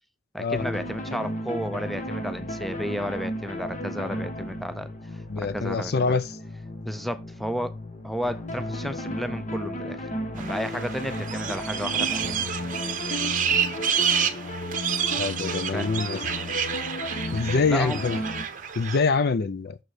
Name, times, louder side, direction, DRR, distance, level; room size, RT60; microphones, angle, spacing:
voice 1, 0.3-4.9 5.5-6.2 6.8-7.7 8.0-12.4 15.7-15.9 17.3-18.0, equal, ahead, 0.5 m, -32 dB
sound 1, 0.6-18.5, left 1 dB, 40° left, 1.0 m, -34 dB
voice 2, 5.3-6.3 15.2-16.2 17.3-18.2 18.8-19.8, left 4 dB, 55° left, 0.5 m, -25 dB
sound 2, 10.4-19.0, right 8 dB, 40° right, 0.8 m, -29 dB
6.3 x 4.6 x 4.9 m
head